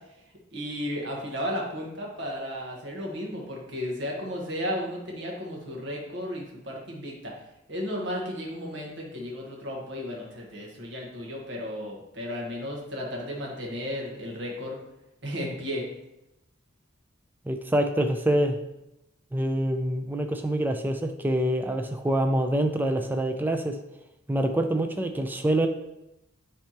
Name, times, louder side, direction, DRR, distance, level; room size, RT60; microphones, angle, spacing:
voice 1, 0.5-7.3 7.7-14.8 15.2-15.8, equal, 60° right, -1 dB, 1.4 m, -34 dB
voice 2, 17.5-18.6 19.3-23.8 24.3-25.7, right 1 dB, 10° right, 5 dB, 0.3 m, -26 dB
10.0 x 3.3 x 2.9 m, 0.91 s
head